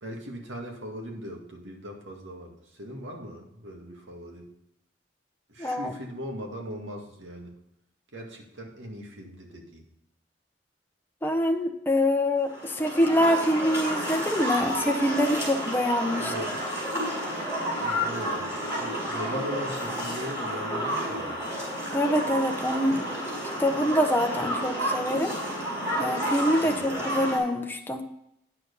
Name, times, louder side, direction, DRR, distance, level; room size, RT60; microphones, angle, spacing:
voice 1, 0.0-4.5 5.5-7.5 8.1-9.8 16.2-16.7 17.8-21.4 26.6-26.9, equal, 90° right, 1 dB, 2.0 m, -39 dB
voice 2, 5.6-5.9 11.2-16.3 21.9-23.0 23.6-25.3 26.0-28.1, left 1 dB, 10° left, 3 dB, 0.7 m, -25 dB
sound 1, 12.5-27.4, equal, 15° right, 4.5 m, -31 dB
9.5 x 6.6 x 5.3 m, 0.79 s
head